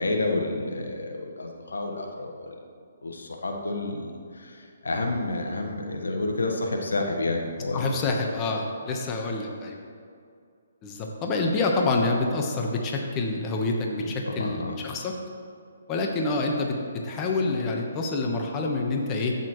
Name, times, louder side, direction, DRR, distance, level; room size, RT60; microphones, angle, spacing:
voice 1, 0.0-2.6 3.0-7.9 14.0-14.8, left 2 dB, 80° left, 2 dB, 1.3 m, -30 dB
voice 2, 7.7-9.8 10.8-15.1 15.9-19.3, left 3 dB, 25° left, 1 dB, 1.1 m, -27 dB
15.0 x 6.9 x 3.1 m, 2.3 s
hypercardioid pair, 140°, 0 cm